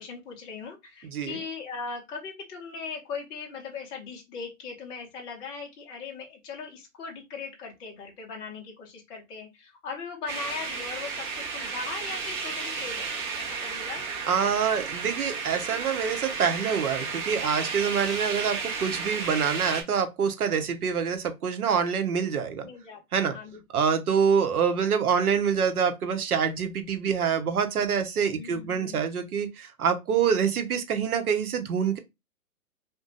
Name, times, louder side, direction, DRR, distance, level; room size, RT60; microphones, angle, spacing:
voice 1, 0.0-14.1 22.6-23.6 23.9-24.0 28.3-29.1, left 5 dB, 10° left, 0.5 m, -39 dB
sound 1, 10.3-19.8, right 5 dB, 35° right, 1.1 m, -33 dB
voice 2, 14.3-22.7 23.1-23.3 23.7-32.0, right 7 dB, 80° right, 0.9 m, -26 dB
2.6 x 2.2 x 3.8 m
hypercardioid pair, 130°, 44 cm